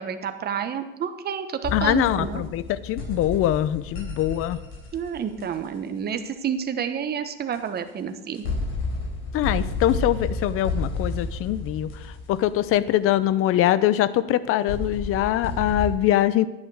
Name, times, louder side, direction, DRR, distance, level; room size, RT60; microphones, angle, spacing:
voice 1, 0.0-2.4 4.9-8.5, right 7 dB, 30° right, 9 dB, 1.1 m, -29 dB
sound 1, 1.6-5.7 7.5-7.6 8.3-12.9 14.7-15.9, left 3 dB, 75° left, 4.2 m, -31 dB
voice 2, 1.7-4.6 9.3-11.9 12.3-16.5, left 13 dB, 45° left, 16 dB, 0.7 m, -23 dB
11.0 x 9.7 x 4.9 m, 0.98 s
hypercardioid pair, 95°, 31 cm